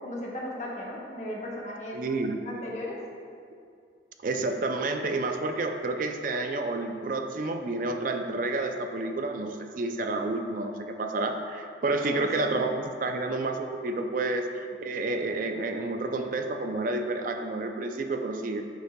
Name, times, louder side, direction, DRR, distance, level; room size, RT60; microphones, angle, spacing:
voice 1, 0.0-2.0 2.4-3.0 12.0-12.7, left 1 dB, 40° left, -4 dB, 1.1 m, -36 dB
voice 2, 1.9-2.5 4.2-14.5 14.8-18.6, right 2 dB, 50° right, 5 dB, 0.4 m, -30 dB
10.0 x 5.3 x 2.3 m, 2.3 s
head